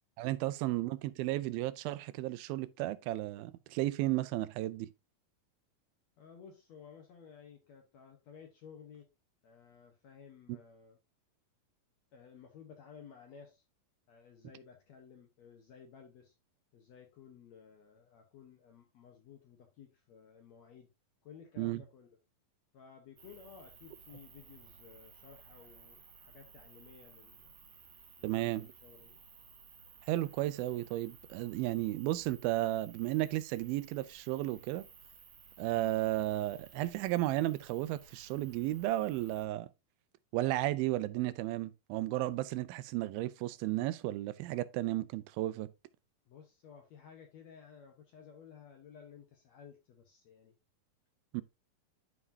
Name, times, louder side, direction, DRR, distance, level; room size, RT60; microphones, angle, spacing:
voice 1, 0.2-4.9 10.5-10.6 21.6-21.8 28.2-28.7 30.1-34.8 35.6-39.7 40.3-45.7 51.3-51.4, right 16 dB, 85° right, 2.4 m, -34 dB
voice 2, 6.2-9.1 9.4-11.0 12.1-13.6 14.1-16.3 16.7-20.9 21.2-22.2 22.7-27.5 28.2-29.2 46.3-50.5, left 7 dB, 70° left, 1.7 m, -55 dB
sound 1, 23.2-39.4, right 6 dB, 50° right, 2.2 m, -57 dB
11.0 x 4.9 x 2.7 m
omnidirectional pair, 4.2 m